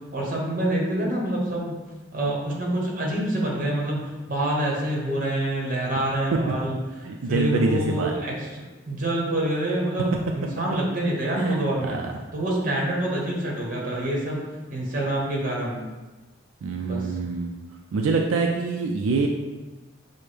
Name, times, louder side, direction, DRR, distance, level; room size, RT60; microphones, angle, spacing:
voice 1, 0.1-1.7 2.1-6.8 7.3-12.0 12.3-14.4 14.7-15.8 16.8-17.0, right 1 dB, 40° right, -2 dB, 1.0 m, -26 dB
voice 2, 7.0-8.2 11.3-12.1 16.6-17.5 17.9-19.3, right 3 dB, 85° right, 2 dB, 0.3 m, -25 dB
5.9 x 2.1 x 3.3 m, 1.2 s
head